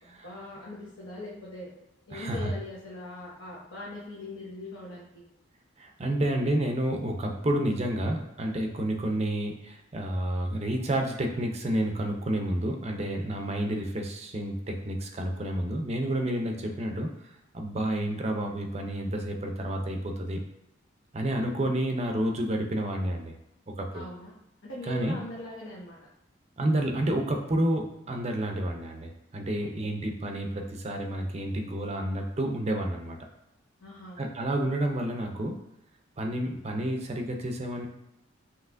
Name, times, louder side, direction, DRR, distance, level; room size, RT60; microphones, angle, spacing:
voice 1, 0.0-1.7 2.1-5.3 23.9-24.4 24.6-26.0 29.8-30.0 33.8-34.2, left 1 dB, 80° left, -6 dB, 0.9 m, -41 dB
voice 2, 2.1-2.5 5.8-17.1 17.5-20.4 21.1-23.3 23.8-24.1 24.9-25.2 26.6-33.2 34.2-35.6 36.2-37.9, right 1 dB, 30° right, 3 dB, 0.5 m, -30 dB
5.5 x 2.9 x 2.5 m, 0.87 s
head